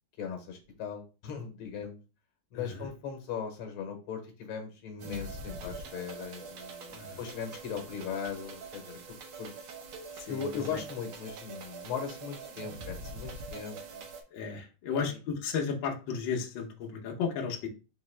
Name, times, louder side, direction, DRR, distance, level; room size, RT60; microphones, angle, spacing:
voice 1, 0.2-2.0 2.5-9.0 9.4-9.6 10.3-14.0 14.9-15.2, left 7 dB, 85° left, 4 dB, 1.8 m, -39 dB
voice 2, 2.5-2.9 6.9-7.2 10.2-10.8 14.3-17.7, left 6 dB, 70° left, 1 dB, 1.5 m, -34 dB
sound 1, 5.0-14.2, right 3 dB, 85° right, 1.8 m, -44 dB
4.5 x 3.0 x 3.2 m, 0.32 s
omnidirectional pair, 2.3 m